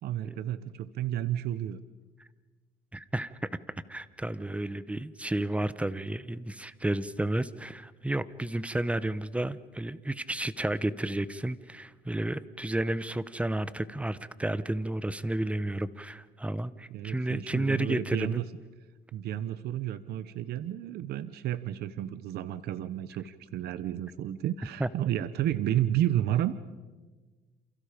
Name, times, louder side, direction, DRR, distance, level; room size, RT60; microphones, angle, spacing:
voice 1, 0.0-1.8 16.9-18.5 19.1-26.7, right 12 dB, 70° right, 14 dB, 1.0 m, -31 dB
voice 2, 2.9-3.3 3.9-18.4 24.8-24.9, right 1 dB, 5° right, 16 dB, 1.0 m, -32 dB
29.0 x 28.0 x 5.2 m, 1.3 s
cardioid pair, 110°, 17 cm